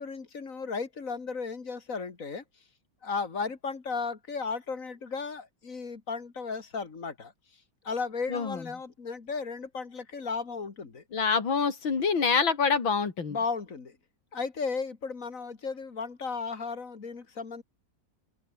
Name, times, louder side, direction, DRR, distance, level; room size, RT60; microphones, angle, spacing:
voice 1, 0.0-2.4 3.0-7.3 7.8-11.0 13.3-14.0 14.3-17.6, left 4 dB, 45° left, 2.5 m, -35 dB
voice 2, 8.3-8.6 11.1-13.4, left 5 dB, 85° left, 3.7 m, -26 dB
omnidirectional pair, 2.1 m